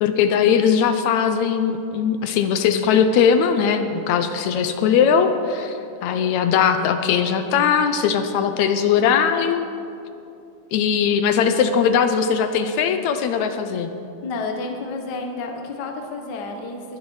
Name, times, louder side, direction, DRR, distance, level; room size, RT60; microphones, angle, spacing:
voice 1, 0.0-9.6 10.7-13.9, left 7 dB, 80° left, 8 dB, 1.9 m, -19 dB
voice 2, 14.2-17.0, left 3 dB, 55° left, 3 dB, 1.2 m, -30 dB
21.0 x 11.0 x 3.2 m, 2.7 s
omnidirectional pair, 3.4 m